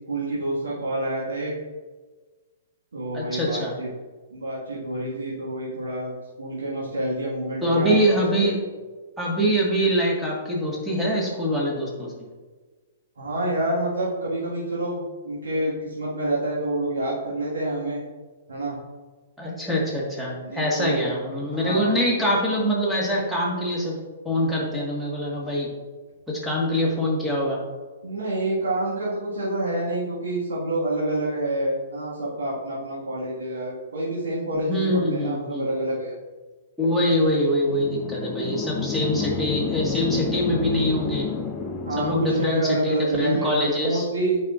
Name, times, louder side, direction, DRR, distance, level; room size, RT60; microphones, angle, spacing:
voice 1, 0.1-1.5 2.9-3.9 4.3-7.9 8.2-8.5 13.2-18.0 18.5-18.8 20.4-21.1 21.5-22.0 28.0-36.1 41.9-44.4, right 1 dB, 65° right, -7 dB, 1.8 m, -28 dB
voice 2, 3.1-3.7 7.6-8.6 9.2-12.2 19.4-24.0 24.2-25.7 26.3-27.6 34.7-35.7 36.8-41.3 42.0-44.0, equal, ahead, -4 dB, 1.6 m, -24 dB
sound 1, 37.7-42.6, left 4 dB, 20° left, 0.5 m, -29 dB
8.3 x 5.4 x 2.5 m, 1.3 s
figure-of-eight pair, 115°, 0 cm